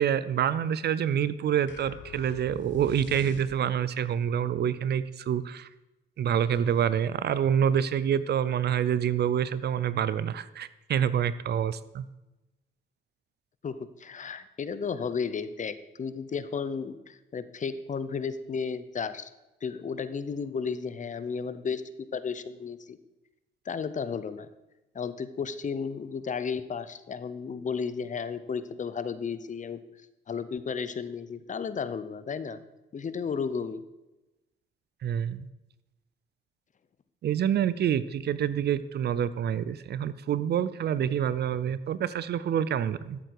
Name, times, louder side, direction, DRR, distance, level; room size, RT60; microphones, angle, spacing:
voice 1, 0.0-5.7 6.2-12.1 35.0-35.5 37.2-43.2, right 9 dB, 55° right, 16 dB, 0.6 m, -27 dB
sound 1, 1.7-4.0, left 6 dB, 70° left, 1.3 m, -44 dB
voice 2, 13.6-19.3 19.6-21.8 22.1-23.0 23.6-24.5 24.9-29.8 30.3-32.6 32.9-33.8, left 6 dB, 40° left, 13 dB, 0.8 m, -33 dB
13.0 x 7.7 x 4.8 m, 1.0 s
cardioid pair, 90°, 20 cm